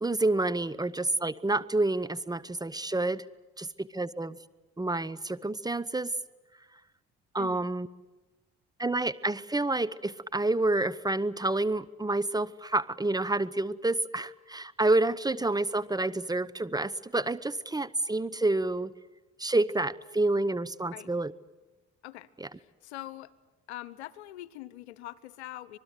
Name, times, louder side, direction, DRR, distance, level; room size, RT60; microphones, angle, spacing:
voice 1, 0.0-3.2 3.6-4.4 4.8-6.1 7.3-7.9 8.8-18.9 19.4-21.3 22.4-22.5, right 2 dB, 10° right, 16 dB, 0.8 m, -28 dB
voice 2, 7.4-7.7 20.9-21.1 22.0-23.3 23.7-25.8, left 15 dB, 70° left, 21 dB, 0.9 m, -43 dB
26.0 x 20.0 x 9.7 m, 1.1 s
figure-of-eight pair, 45°, 34 cm